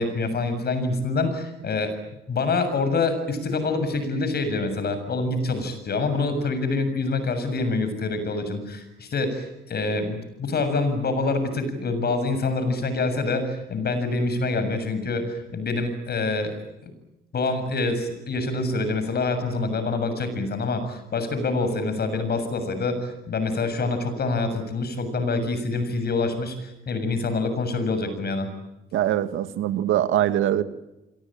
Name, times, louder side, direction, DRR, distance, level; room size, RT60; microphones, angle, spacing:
voice 1, 0.0-1.9 2.3-16.5 16.8-16.9 17.3-28.5, left 3 dB, 55° left, 10 dB, 7.2 m, -26 dB
voice 2, 28.9-30.6, right 12 dB, 85° right, 11 dB, 1.9 m, -22 dB
28.0 x 23.0 x 8.8 m, 0.95 s
cardioid pair, 90°, 20 cm